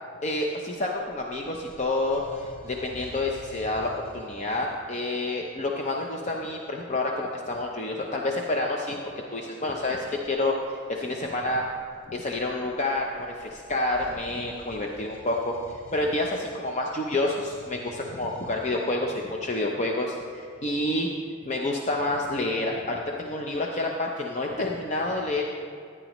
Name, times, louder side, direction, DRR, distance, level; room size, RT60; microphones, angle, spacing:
voice 1, 0.2-9.0 9.3-10.5 10.9-11.6 12.1-15.5 15.9-21.1 21.5-25.4, left 2 dB, 35° left, 0 dB, 0.6 m, -28 dB
sound 1, 0.9-4.8 10.1-10.4 11.2-18.9, equal, 75° left, 2.8 m, -49 dB
15.0 x 9.8 x 3.1 m, 2.4 s
head